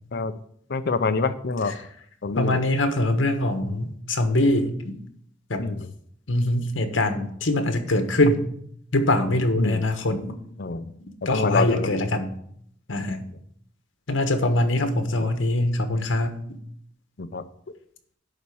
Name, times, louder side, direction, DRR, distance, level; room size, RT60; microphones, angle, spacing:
voice 1, 0.7-1.7 2.2-2.6 5.6-5.9 9.6-9.8 10.6-10.9 11.3-11.9 17.2-17.4, left 3 dB, 55° left, 11 dB, 0.6 m, -26 dB
voice 2, 2.4-4.8 5.5-5.6 6.3-8.4 8.9-10.4 11.2-12.3 12.9-13.2 14.1-16.4, left 1 dB, 80° left, 7 dB, 1.3 m, -23 dB
11.0 x 4.3 x 7.0 m, 0.67 s
head